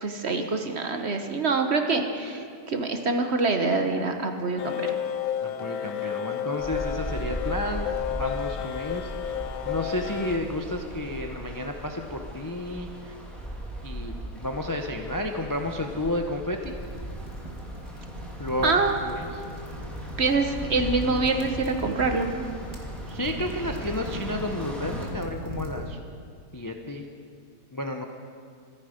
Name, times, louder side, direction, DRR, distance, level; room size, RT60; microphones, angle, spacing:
voice 1, 0.0-4.9 18.6-19.0 20.2-22.3, right 3 dB, 45° right, 5 dB, 1.2 m, -25 dB
sound 1, 4.6-10.4, left 10 dB, 75° left, 1.2 m, -32 dB
voice 2, 5.4-9.1 9.6-13.1 13.8-16.7 18.4-19.4 23.1-26.0 26.5-27.1 27.7-28.0, left 1 dB, 20° left, 4 dB, 0.5 m, -31 dB
sound 2, 6.6-25.1, right 1 dB, ahead, 3.0 m, -38 dB
sound 3, 16.6-25.8, equal, 15° right, 1.9 m, -38 dB
25.5 x 9.9 x 5.1 m, 2.3 s
omnidirectional pair, 1.7 m